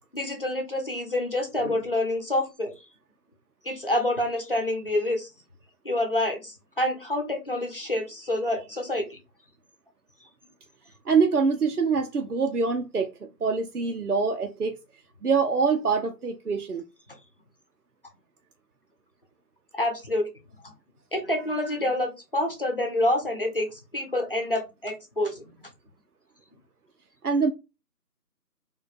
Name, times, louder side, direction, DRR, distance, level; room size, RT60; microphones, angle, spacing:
voice 1, 0.1-2.7 3.6-5.3 5.8-9.2 17.1-17.2 19.7-20.3 20.6-20.7 21.1-25.7, left 1 dB, 35° left, 0.9 m, -27 dB
voice 2, 11.0-14.8 15.2-16.8 27.2-27.5, right 5 dB, 65° right, 0.8 m, -24 dB
3.9 x 3.1 x 4.1 m
figure-of-eight pair, 165°, 49 cm